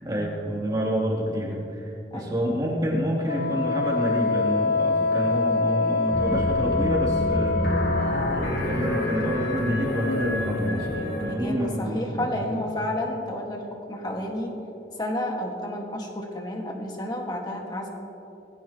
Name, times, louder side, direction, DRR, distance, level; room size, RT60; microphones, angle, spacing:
voice 1, 0.0-7.6 8.0-12.6, equal, 20° right, -4 dB, 2.8 m, -28 dB
voice 2, 2.1-2.6 11.3-14.5 15.0-17.9, left 1 dB, 25° left, 1 dB, 1.7 m, -31 dB
Wind instrument woodwind instrument, 3.3-8.5, left 3 dB, 60° left, 0.4 m, -25 dB
sound 1, 6.1-11.3, left 1 dB, 85° left, 2.7 m, -27 dB
19.5 x 15.5 x 3.0 m, 2.9 s
head